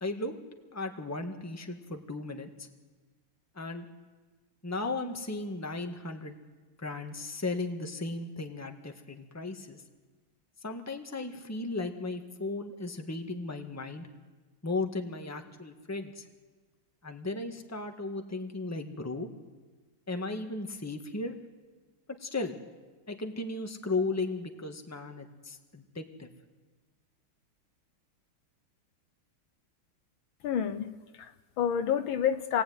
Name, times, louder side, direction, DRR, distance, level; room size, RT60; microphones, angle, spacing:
voice 1, 0.0-0.4 0.7-2.7 3.5-3.9 4.6-6.4 6.8-9.8 10.6-14.1 14.6-16.2 17.0-19.3 20.1-21.4 22.2-22.6 23.1-26.3, left 3 dB, 10° left, 5 dB, 1.6 m, -36 dB
voice 2, 30.4-32.6, left 8 dB, 70° left, 10 dB, 1.7 m, -29 dB
27.0 x 19.5 x 9.6 m, 1.3 s
omnidirectional pair, 2.3 m